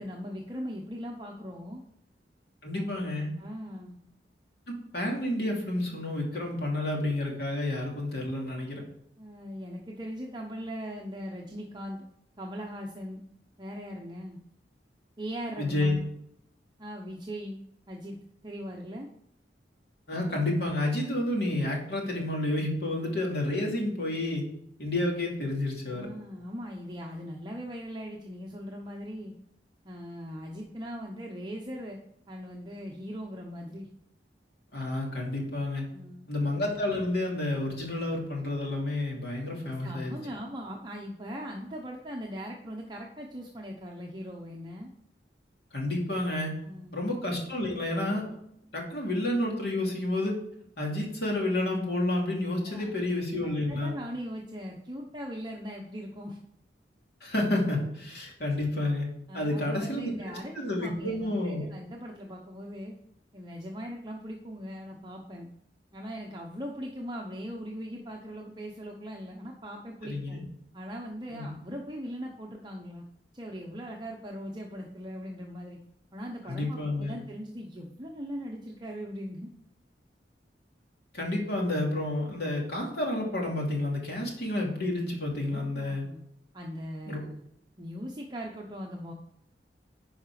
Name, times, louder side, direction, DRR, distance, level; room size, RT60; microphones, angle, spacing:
voice 1, 0.0-1.8 3.4-4.0 9.2-12.1 12.4-13.2 13.6-14.4 15.2-16.0 16.8-17.6 17.9-18.2 18.4-19.1 25.9-29.3 29.8-32.0 32.3-33.9 35.9-36.3 39.7-44.9 46.6-47.0 52.6-52.9 53.4-56.4 59.3-62.9 63.3-65.5 65.9-70.4 70.7-73.0 73.3-75.8 76.1-79.5 85.4-86.2 86.5-87.4 87.8-89.1, equal, 25° right, 0 dB, 0.8 m, -40 dB
voice 2, 2.6-3.3 4.7-8.8 15.6-15.9 20.1-24.4 24.8-26.1 34.7-35.8 36.3-40.2 45.7-46.5 46.9-48.2 48.7-50.3 50.8-53.9 57.2-59.1 59.3-60.1 60.5-61.7 70.0-70.4 71.3-71.5 76.4-77.2 81.1-86.0 87.1-87.2, left 1 dB, 65° left, -1 dB, 2.7 m, -30 dB
10.5 x 5.0 x 4.8 m, 0.73 s
head